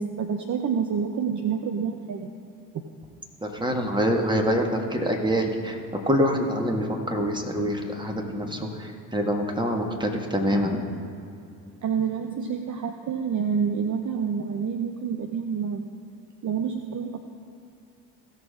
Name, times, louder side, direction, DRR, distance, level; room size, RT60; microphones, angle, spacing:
voice 1, 0.0-2.3 11.8-15.8 16.4-17.2, right 6 dB, 35° right, 4 dB, 0.8 m, -28 dB
voice 2, 3.4-10.8, equal, 10° right, 2 dB, 1.9 m, -25 dB
16.5 x 6.5 x 3.8 m, 2.5 s
figure-of-eight pair, 50°, 50 cm